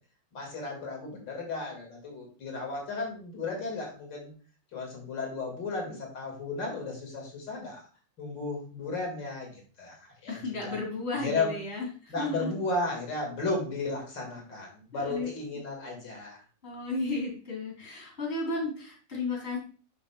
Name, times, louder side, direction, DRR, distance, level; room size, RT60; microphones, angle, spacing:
voice 1, 0.3-4.3 4.7-7.8 8.2-10.4 10.6-10.8 11.2-11.5 12.1-16.4, left 3 dB, 85° left, 0 dB, 2.9 m, -34 dB
voice 2, 10.3-12.5 14.9-15.3 16.6-19.6, left 3 dB, 35° left, -2 dB, 3.3 m, -33 dB
10.5 x 5.9 x 2.3 m, 0.40 s
omnidirectional pair, 1.9 m